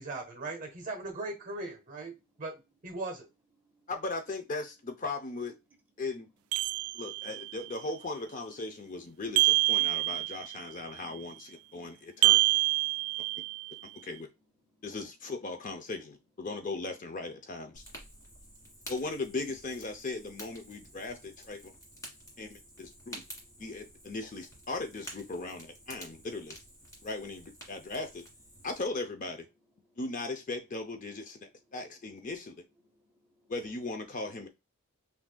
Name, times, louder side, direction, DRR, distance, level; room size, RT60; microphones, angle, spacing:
voice 1, 0.0-3.3, right 2 dB, 40° right, 1.2 m, -39 dB
voice 2, 3.9-5.6 6.0-6.3 6.9-12.4 13.9-14.3 14.8-16.0 16.4-17.8 18.9-21.7 22.4-23.2 23.6-26.6 27.0-28.2 28.6-29.5 30.0-32.6 33.5-34.5, left 3 dB, 35° left, 0.6 m, -38 dB
sound 1, 6.5-7.5 9.4-10.6 12.2-13.7, right 22 dB, 80° right, 0.3 m, -26 dB
Fire, 17.7-28.8, equal, 15° left, 1.7 m, -50 dB
voice 3, 18.1-18.7 22.0-22.4 22.8-23.6 24.0-24.1 32.9-33.4, left 2 dB, 10° right, 1.3 m, -71 dB
6.0 x 2.6 x 2.2 m
head